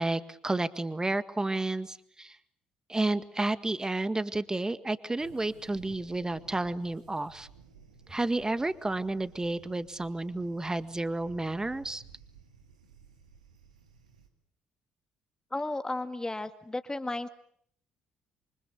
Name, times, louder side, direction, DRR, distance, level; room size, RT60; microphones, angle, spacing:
voice 1, 0.0-2.4 2.9-7.5 8.1-12.0, right 2 dB, 15° right, 13 dB, 1.8 m, -31 dB
sound 1, 5.2-14.3, right 5 dB, 90° right, 2.5 m, -55 dB
voice 2, 15.5-17.3, left 2 dB, 20° left, 9 dB, 2.1 m, -34 dB
28.0 x 25.0 x 8.2 m, 0.66 s
hypercardioid pair, 50°, 4 cm